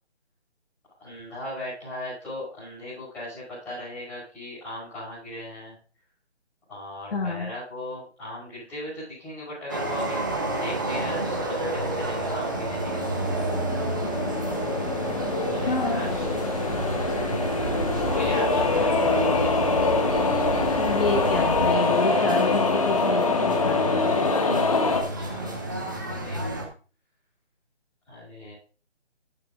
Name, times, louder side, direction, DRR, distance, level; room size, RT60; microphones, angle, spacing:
voice 1, 1.0-5.7 6.7-10.2 10.5-13.3 15.5-16.2 18.1-19.2 24.8-26.6 28.1-28.5, left 1 dB, 5° left, -12 dB, 5.5 m, -38 dB
voice 2, 7.1-7.5 15.7-16.1 20.8-24.0, left 3 dB, 55° left, 1 dB, 1.9 m, -28 dB
sound 1, 9.7-26.6, right 1 dB, 20° right, 0.9 m, -30 dB
sound 2, 12.1-21.7, right 3 dB, 35° right, 2.1 m, -35 dB
sound 3, 12.6-25.0, left 3 dB, 30° left, 1.1 m, -25 dB
12.0 x 8.1 x 2.5 m, 0.37 s
figure-of-eight pair, 170°, 34 cm